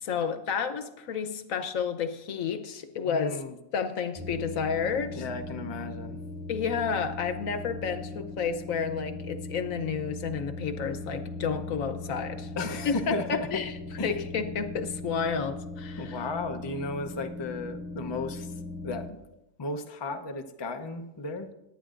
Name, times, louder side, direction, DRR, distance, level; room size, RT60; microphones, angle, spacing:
voice 1, 0.0-3.4 3.7-5.2 6.5-12.5 12.8-13.7 14.0-16.2, left 6 dB, 70° left, 9 dB, 1.3 m, -31 dB
voice 2, 3.1-3.6 5.1-6.2 12.6-13.5 14.0-14.1 16.0-18.5 18.8-19.2 19.6-21.5, left 3 dB, 25° left, 5 dB, 0.6 m, -34 dB
sound 1, 4.1-19.1, left 2 dB, 15° right, 5.1 m, -39 dB
20.0 x 9.3 x 2.5 m, 0.89 s
omnidirectional pair, 1.5 m